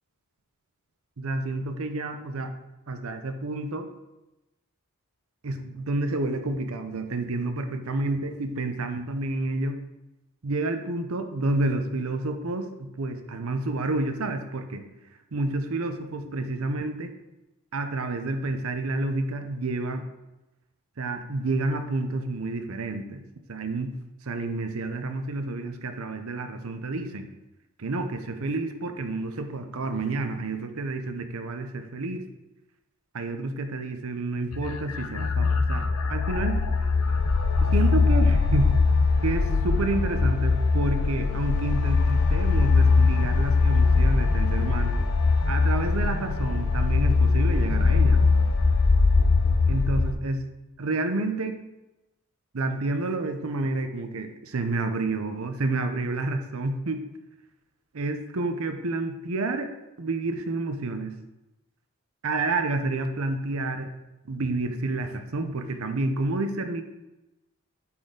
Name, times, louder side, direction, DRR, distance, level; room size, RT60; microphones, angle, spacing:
voice 1, 1.2-2.6 2.9-3.9 5.4-9.8 10.4-14.8 15.3-17.1 17.7-20.1 21.0-23.2 23.5-23.9 24.2-27.3 27.8-32.2 33.1-36.6 37.6-38.8 39.2-45.0 45.5-48.2 49.7-50.4 50.8-51.6 52.5-57.0 57.9-59.7 60.0-61.2 62.2-63.9 64.2-66.8, right 2 dB, 70° right, 7 dB, 0.7 m, -29 dB
sound 1, 34.5-50.1, left 4 dB, 85° left, 0.6 m, -22 dB
8.1 x 4.4 x 3.8 m, 0.99 s
head